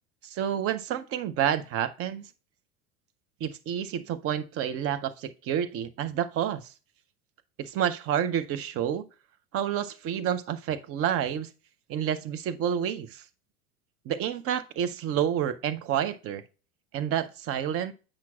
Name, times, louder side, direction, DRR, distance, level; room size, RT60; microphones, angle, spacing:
voice 1, 0.2-2.3 3.4-6.7 7.6-9.0 9.5-11.5 11.9-13.2 14.1-16.4 16.9-17.9, right 9 dB, 30° right, 0.6 m, -29 dB
8.8 x 5.8 x 2.3 m
figure-of-eight pair, 80°, 45 cm